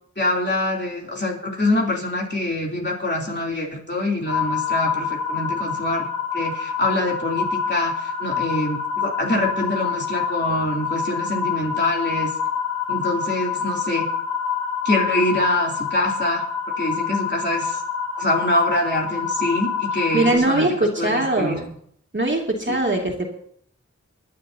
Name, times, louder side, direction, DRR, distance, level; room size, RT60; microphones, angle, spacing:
voice 1, 0.2-6.1 6.3-12.3 12.9-14.1 14.8-16.4 16.8-17.8 18.2-21.6 22.7-22.8, left 1 dB, 35° left, -2 dB, 3.3 m, -25 dB
sound 1, 4.3-20.3, left 6 dB, 75° left, 4.2 m, -26 dB
voice 2, 20.1-21.8 22.1-23.3, right 1 dB, 40° right, -1 dB, 2.7 m, -21 dB
26.0 x 10.5 x 2.8 m, 0.64 s
wide cardioid pair, 55°, 29 cm